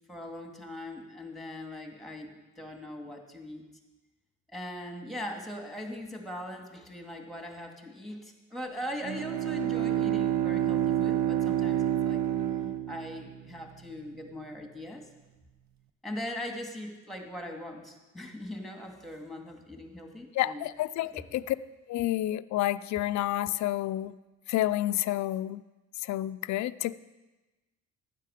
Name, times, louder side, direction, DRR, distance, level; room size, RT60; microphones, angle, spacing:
voice 1, 0.1-3.6 4.5-12.2 12.9-15.1 16.0-20.6 21.0-21.4, left 1 dB, ahead, 3 dB, 2.0 m, -40 dB
Bowed string instrument, 9.0-13.6, right 11 dB, 65° right, 0.7 m, -28 dB
voice 2, 20.3-21.6 21.9-24.2 24.5-25.6 26.0-26.9, left 14 dB, 70° left, 14 dB, 0.5 m, -29 dB
12.0 x 9.2 x 5.0 m, 1.1 s
cardioid pair, 90°, 30 cm